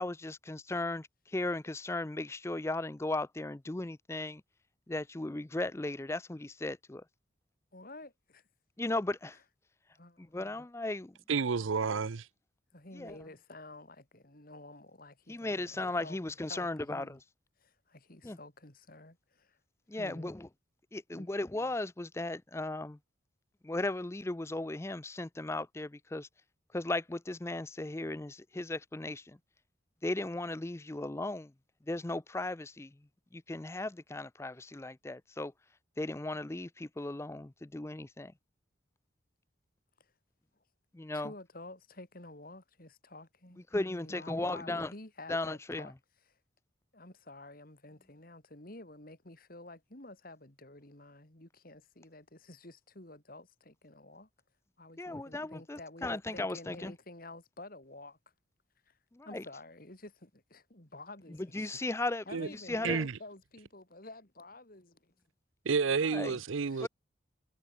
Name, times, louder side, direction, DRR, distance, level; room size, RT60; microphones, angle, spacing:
voice 1, 0.0-4.4 4.9-7.0 8.8-9.4 10.2-11.2 12.9-13.2 15.3-17.2 18.2-18.4 19.9-20.5 20.9-23.0 23.6-26.3 26.7-29.4 30.0-31.5 31.9-33.0 33.3-35.5 36.0-38.3 40.9-41.3 43.7-44.9 45.3-45.9 55.0-56.9 59.1-59.4 61.5-62.3 62.5-63.0 66.1-66.4 66.8-66.9, left 2 dB, 15° left, 0.4 m, -36 dB
voice 2, 7.7-8.4 9.9-10.4 12.7-16.2 16.5-17.2 17.6-19.6 19.9-20.3 21.1-21.4 40.0-40.1 41.1-45.9 46.3-46.4 46.9-54.3 54.8-58.2 58.9-59.0 59.2-61.4 62.3-65.1 66.7-66.9, left 2 dB, 45° left, 2.9 m, -50 dB
voice 3, 11.3-12.2 62.3-62.5 62.8-63.1 65.7-66.9, right 5 dB, 90° right, 0.6 m, -30 dB
head